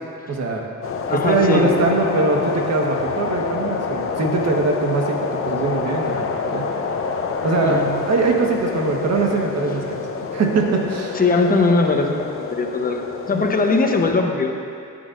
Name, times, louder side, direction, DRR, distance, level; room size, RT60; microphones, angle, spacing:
voice 1, 0.3-0.6 1.1-6.7 7.4-7.8 8.0-10.1 10.3-11.2 13.3-13.4, right 3 dB, 60° right, 1 dB, 1.5 m, -21 dB
sound 1, 0.8-14.1, left 5 dB, 45° left, 0.8 m, -27 dB
voice 2, 1.1-1.7 7.6-7.9 11.1-14.5, left 3 dB, 30° left, 3 dB, 1.0 m, -20 dB
14.0 x 9.4 x 2.6 m, 2.5 s
cardioid pair, 90°, 30 cm